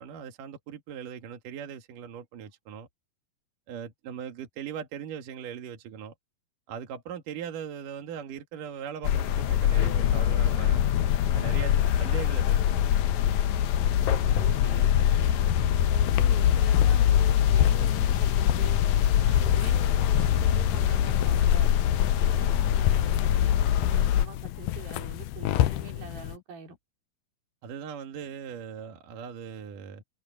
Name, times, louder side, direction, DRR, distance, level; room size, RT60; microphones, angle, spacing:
voice 1, 0.0-2.9 3.7-6.1 6.7-10.8 11.3-12.9 27.6-30.0, right 8 dB, 65° right, 3.3 m, -39 dB
sound 1, 9.0-24.3, left 10 dB, 70° left, 2.0 m, -23 dB
voice 2, 13.7-15.4 15.9-18.8 19.2-21.7 22.2-26.8, right 5 dB, 85° right, 5.2 m, -45 dB
sound 2, 16.0-26.4, left 13 dB, 90° left, 2.6 m, -32 dB
omnidirectional pair, 4.1 m